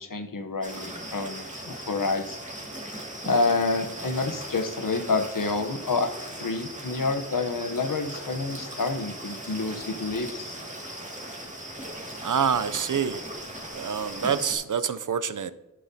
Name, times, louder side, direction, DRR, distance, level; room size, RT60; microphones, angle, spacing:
voice 1, 0.0-2.4 3.2-10.6, left 3 dB, 80° left, 7 dB, 0.8 m, -28 dB
sound 1, 0.6-14.6, right 1 dB, 25° right, 2.0 m, -39 dB
voice 2, 12.2-13.2 13.7-15.5, right 7 dB, 70° right, 12 dB, 0.5 m, -26 dB
11.0 x 7.5 x 2.7 m, 1.1 s
wide cardioid pair, 50°, 32 cm